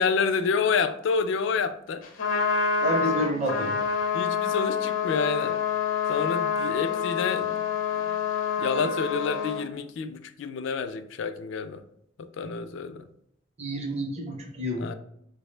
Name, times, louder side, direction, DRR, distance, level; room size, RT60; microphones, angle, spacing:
voice 1, 0.0-2.0 4.1-5.6 6.1-7.6 8.6-11.8 12.2-13.0 14.8-14.9, left 5 dB, 65° left, 0.3 m, -28 dB
Trumpet, 2.0-9.6, left 6 dB, 85° left, 0.7 m, -27 dB
voice 2, 2.8-3.8 13.6-14.8, right 1 dB, 35° right, 0.6 m, -29 dB
4.2 x 2.0 x 3.2 m
head